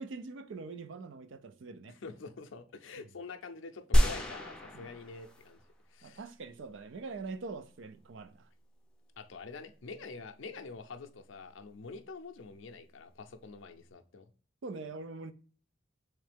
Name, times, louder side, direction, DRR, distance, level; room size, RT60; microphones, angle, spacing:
voice 1, 0.0-2.0 3.0-3.1 4.7-4.9 6.0-8.5 14.6-15.3, right 3 dB, 65° right, 0.4 m, -43 dB
voice 2, 2.0-5.6 5.9-6.2 9.2-14.3, left 4 dB, 70° left, 0.5 m, -46 dB
sound 1, 3.9-5.7 6.2-6.3, equal, 5° left, 0.5 m, -28 dB
3.6 x 3.2 x 3.3 m
head